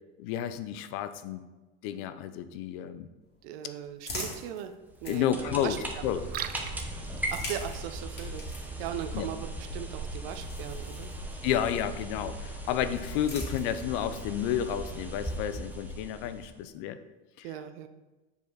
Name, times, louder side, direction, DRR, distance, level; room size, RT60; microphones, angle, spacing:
voice 1, 0.2-1.4 1.8-3.1 5.1-5.8 6.0-6.2 9.1-9.3 11.4-17.0 17.4-17.5, left 10 dB, 65° left, 12 dB, 0.6 m, -31 dB
sound 1, 3.2-6.3 7.1-11.7 12.6-14.1, left 2 dB, 30° left, 2.4 m, -45 dB
voice 2, 3.4-6.0 7.3-11.1 17.4-17.9, right 10 dB, 70° right, 8 dB, 0.7 m, -39 dB
sound 2, 4.9-16.7, right 1 dB, 5° right, 0.9 m, -38 dB
Liquid, 6.1-11.1, right 10 dB, 30° right, 0.4 m, -45 dB
6.7 x 4.9 x 4.1 m, 1.1 s
supercardioid pair, 110°, 31 cm